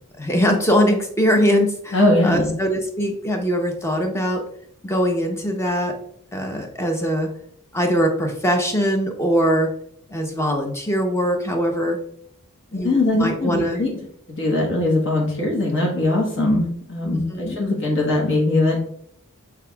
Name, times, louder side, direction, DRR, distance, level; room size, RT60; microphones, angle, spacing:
voice 1, 0.2-4.4 4.8-5.9 6.3-7.3 7.7-9.7 10.1-12.0 12.7-13.8 17.0-17.6, equal, 10° left, 3 dB, 0.7 m, -22 dB
voice 2, 1.9-2.5 12.7-13.9 14.4-18.8, left 2 dB, 55° left, 0 dB, 1.2 m, -20 dB
6.7 x 3.4 x 2.3 m, 0.67 s
head